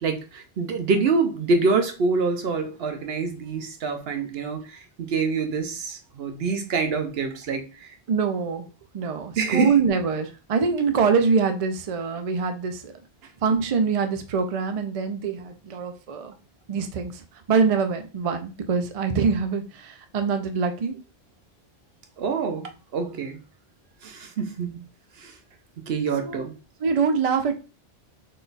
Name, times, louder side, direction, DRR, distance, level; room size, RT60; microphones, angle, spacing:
voice 1, 0.0-7.9 9.4-9.8 22.2-23.4 24.0-24.9 25.2-25.3 25.9-26.5, right 4 dB, 70° right, 6 dB, 0.9 m, -26 dB
voice 2, 8.1-8.7 8.9-12.9 13.4-16.3 16.7-21.0 26.2-26.4 26.8-27.5, right 5 dB, 50° right, 7 dB, 0.5 m, -24 dB
3.8 x 2.3 x 3.9 m, 0.31 s
omnidirectional pair, 1.1 m